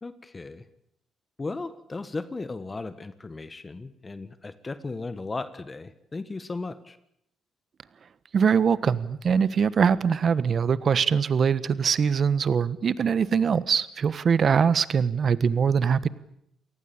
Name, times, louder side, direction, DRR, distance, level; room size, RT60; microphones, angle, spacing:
voice 1, 0.0-0.6 1.4-7.0, left 3 dB, 25° left, 13 dB, 1.5 m, -36 dB
voice 2, 8.3-16.1, right 6 dB, 50° right, 16 dB, 1.3 m, -22 dB
28.5 x 19.0 x 8.8 m, 0.75 s
cardioid pair, 90°, 0 cm